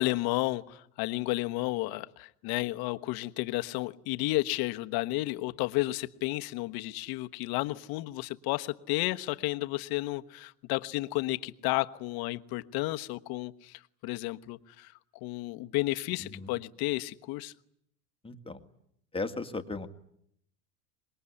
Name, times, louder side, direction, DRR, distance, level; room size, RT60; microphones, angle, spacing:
voice 1, 0.0-14.9 15.2-17.5, left 19 dB, 55° left, 9 dB, 1.3 m, -32 dB
voice 2, 18.2-18.6 19.1-19.9, left 3 dB, 10° left, 7 dB, 1.8 m, -36 dB
25.0 x 21.5 x 9.9 m, 0.72 s
supercardioid pair, 115°, 45 cm